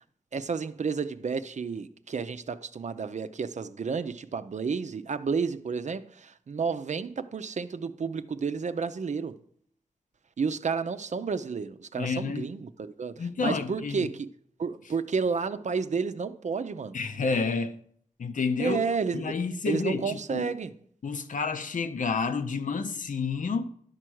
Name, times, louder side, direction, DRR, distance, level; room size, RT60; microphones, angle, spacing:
voice 1, 0.3-9.4 10.4-14.3 14.6-17.0 18.6-19.4 19.7-20.7, right 5 dB, 60° right, 0.5 m, -31 dB
voice 2, 12.0-12.5 13.2-14.1 16.9-17.8 18.2-18.8 19.1-20.4 21.0-23.6, left 5 dB, 75° left, 0.7 m, -29 dB
11.0 x 4.5 x 6.2 m
cardioid pair, 40°, 13 cm